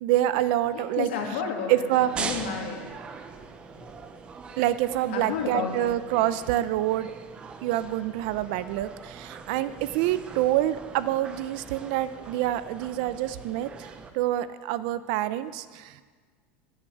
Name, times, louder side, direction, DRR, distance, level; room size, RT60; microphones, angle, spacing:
voice 1, 0.0-1.1 1.7-2.1 4.6-7.1 7.6-16.0, right 14 dB, 55° right, 14 dB, 0.6 m, -26 dB
voice 2, 0.7-1.7 2.0-2.9 3.3-4.0 5.1-5.9, left 6 dB, 85° left, 1 dB, 2.6 m, -32 dB
sound 1, 1.9-14.1, right 5 dB, 20° right, 0.7 m, -41 dB
11.0 x 9.7 x 7.9 m, 1.5 s
supercardioid pair, 165°, 6 cm